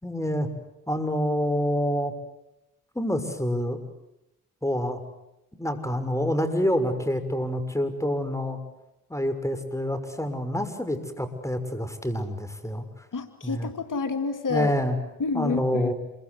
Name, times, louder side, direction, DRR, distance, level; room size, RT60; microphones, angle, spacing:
voice 1, 0.0-0.5 0.9-2.1 2.9-3.8 4.6-5.0 5.5-8.6 9.1-13.1 13.4-13.7 14.5-15.0 15.3-15.9, equal, 10° left, 10 dB, 6.2 m, -27 dB
voice 2, 13.1-14.7 15.2-15.9, left 4 dB, 60° left, 7 dB, 2.5 m, -29 dB
27.5 x 24.0 x 8.1 m, 0.89 s
supercardioid pair, 45°, 35 cm